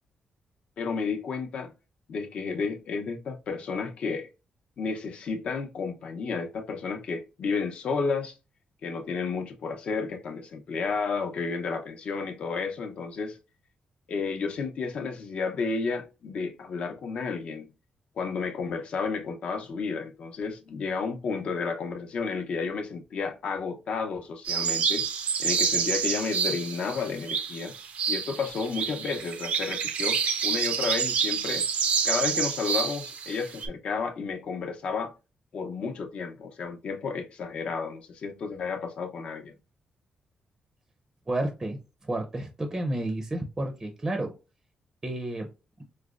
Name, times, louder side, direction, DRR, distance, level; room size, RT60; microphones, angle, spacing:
voice 1, 0.8-1.7 2.1-4.3 4.8-8.3 8.8-13.4 14.1-17.7 18.2-25.1 25.4-27.7 28.1-31.7 32.0-35.1 35.5-39.6, left 5 dB, 60° left, 0.6 m, -32 dB
sound 1, 24.4-33.7, right 6 dB, 75° right, 0.5 m, -28 dB
voice 2, 41.3-44.3 45.0-45.5, right 1 dB, 20° right, 0.5 m, -31 dB
4.8 x 2.1 x 2.3 m
wide cardioid pair, 150°, 2 cm